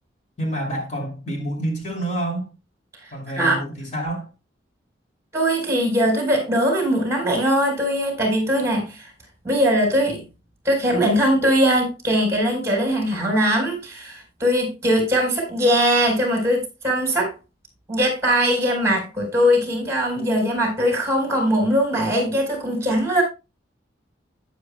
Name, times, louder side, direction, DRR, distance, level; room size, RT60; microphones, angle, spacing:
voice 1, 0.4-2.5 3.1-4.3, right 1 dB, 40° left, 2.7 m, -28 dB
voice 2, 5.3-9.1 9.4-10.2 10.6-17.3 17.9-23.2, equal, 15° right, 4.2 m, -21 dB
12.0 x 10.0 x 2.2 m
head